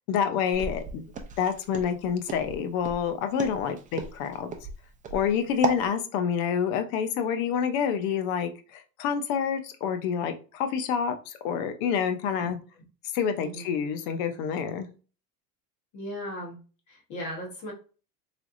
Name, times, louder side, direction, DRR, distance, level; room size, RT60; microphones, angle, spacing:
voice 1, 0.1-1.0 1.4-4.5 5.1-12.6 13.1-14.9, left 7 dB, 80° left, 7 dB, 0.8 m, -28 dB
Walk footsteps, 0.5-5.9, right 4 dB, 20° right, 0.5 m, -34 dB
voice 2, 13.4-13.7 15.9-16.6 16.9-17.7, equal, 45° left, 0 dB, 1.3 m, -37 dB
3.9 x 3.4 x 2.5 m, 0.36 s
cardioid pair, 145°, 40 cm